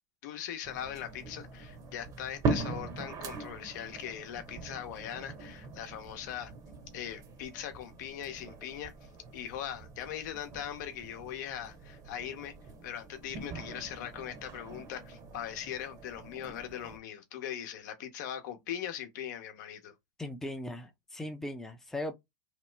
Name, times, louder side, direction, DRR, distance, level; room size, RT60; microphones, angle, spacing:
voice 1, 0.2-6.5 6.9-8.9 9.3-12.5 12.8-19.9, left 10 dB, 70° left, 0.8 m, -40 dB
sound 1, 0.6-17.0, right 3 dB, 35° right, 0.8 m, -41 dB
voice 2, 20.2-22.1, left 1 dB, 5° left, 0.5 m, -38 dB
2.9 x 2.0 x 3.3 m
hypercardioid pair, 110°, 10 cm